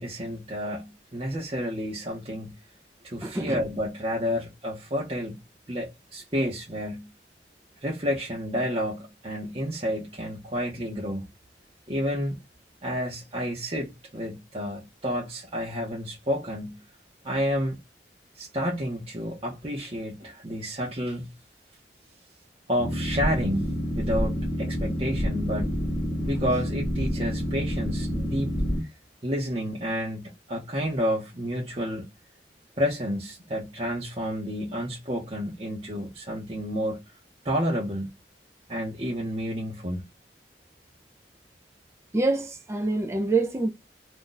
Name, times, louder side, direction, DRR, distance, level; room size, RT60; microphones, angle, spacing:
voice 1, 0.0-2.5 3.0-5.4 5.7-7.1 7.8-11.2 11.9-12.4 12.8-16.8 17.2-17.8 18.4-21.3 22.7-25.8 26.2-28.5 29.2-32.1 32.8-37.0 37.4-38.1 38.7-40.1, equal, 30° right, 0.8 m, -30 dB
voice 2, 3.2-3.6 42.1-43.7, right 3 dB, 15° right, 0.3 m, -26 dB
Boat Water vehicle, 22.8-28.8, equal, 35° left, 0.8 m, -28 dB
2.6 x 2.2 x 3.8 m
head